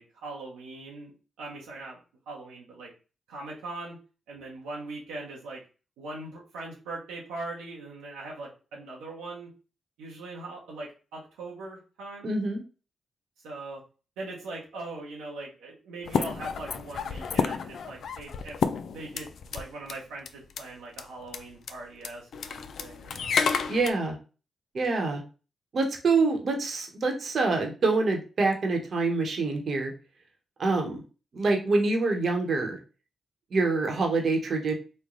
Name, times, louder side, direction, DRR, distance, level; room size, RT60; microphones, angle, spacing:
voice 1, 0.0-2.0 2.3-2.9 3.3-4.0 4.3-5.6 6.0-9.5 10.0-12.3 13.4-13.8 14.2-18.6 18.9-23.3, right 2 dB, 90° right, -3 dB, 0.8 m, -41 dB
voice 2, 12.2-12.6 23.7-24.2 24.7-25.2 25.7-29.9 30.6-31.0 31.3-32.8 33.5-34.7, right 3 dB, 60° right, 2 dB, 0.9 m, -26 dB
sound 1, 16.1-19.6 19.9-20.0 20.3-20.6 21.0-21.1 21.3-21.4 21.7-21.8 22.0-23.9, left 6 dB, 70° left, 0.3 m, -30 dB
3.2 x 2.2 x 3.7 m, 0.34 s
supercardioid pair, 45°, 0 cm